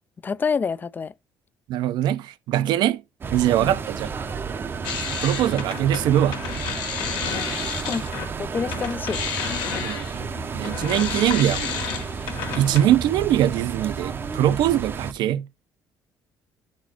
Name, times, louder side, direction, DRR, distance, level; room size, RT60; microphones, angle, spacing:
voice 1, 0.2-1.1 3.6-3.7 7.9-8.0 8.4-9.2, left 5 dB, 25° left, 0.3 m, -27 dB
voice 2, 1.7-3.0 3.3-4.1 5.2-6.4 9.8-11.9 12.5-15.5, right 12 dB, 75° right, 0.6 m, -22 dB
sound 1, 3.2-15.1, right 5 dB, 30° right, 0.6 m, -32 dB
sound 2, 4.8-8.3 8.7-12.9, left 7 dB, 85° left, 1.5 m, -31 dB
11.0 x 4.4 x 2.8 m
cardioid pair, 125°, 8 cm